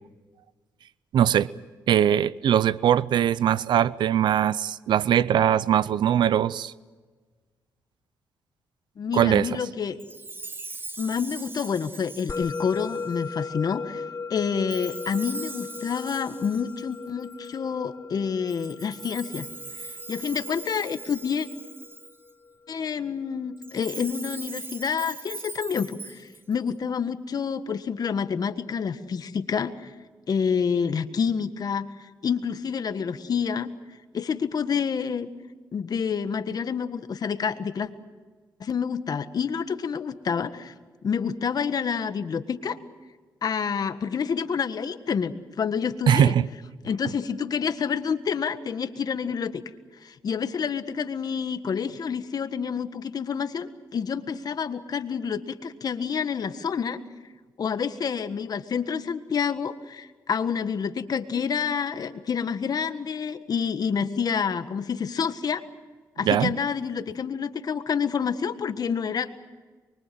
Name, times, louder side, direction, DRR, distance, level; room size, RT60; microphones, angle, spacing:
voice 1, 1.1-1.5 1.9-6.7 9.1-9.5 46.1-46.5 66.3-66.5, right 10 dB, 75° right, 0.7 m, -21 dB
voice 2, 9.0-10.0 11.0-14.0 14.3-19.5 19.8-21.5 22.7-29.9 30.3-33.7 34.1-35.3 35.7-37.9 38.6-40.7 41.0-42.8 43.4-46.3 46.8-49.6 50.0-57.0 57.6-65.6 66.2-69.3, left 6 dB, 55° left, 1.6 m, -28 dB
Chime, 10.0-13.3 14.7-17.5 18.5-22.3 23.6-26.7, right 3 dB, 25° right, 1.3 m, -41 dB
Musical instrument, 12.3-22.9, left 4 dB, 40° left, 0.9 m, -38 dB
24.5 x 23.5 x 7.8 m
cardioid pair, 70°, 8 cm